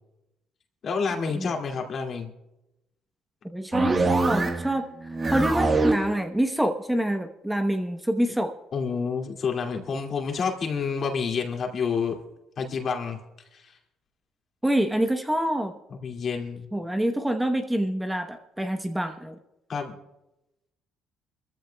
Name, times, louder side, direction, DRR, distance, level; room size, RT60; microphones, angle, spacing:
voice 1, 0.8-2.3 8.7-12.2 12.6-13.2 13.5-13.7 15.9-16.7 19.7-19.9, left 5 dB, 50° left, 2 dB, 2.3 m, -29 dB
voice 2, 3.5-8.5 14.6-15.7 16.7-19.3, right 1 dB, 5° right, 6 dB, 0.9 m, -26 dB
sound 1, 3.7-4.8 5.1-6.1, right 3 dB, 35° right, 1.4 m, -24 dB
24.5 x 14.0 x 2.3 m, 0.92 s
supercardioid pair, 80°, 0 cm